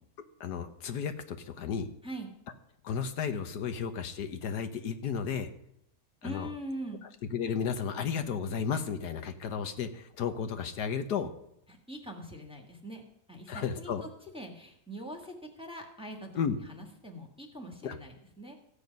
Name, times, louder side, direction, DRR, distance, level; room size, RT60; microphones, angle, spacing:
voice 1, 0.4-1.9 2.8-5.5 6.2-6.5 7.3-11.3 13.5-14.0 16.3-16.6 17.8-18.0, left 7 dB, 80° left, 8 dB, 1.5 m, -33 dB
voice 2, 6.2-7.1 11.7-13.0 13.3-14.1 14.3-16.3 16.6-18.5, right 1 dB, 5° right, 2 dB, 1.5 m, -42 dB
15.0 x 8.5 x 5.3 m, 0.77 s
omnidirectional pair, 1.7 m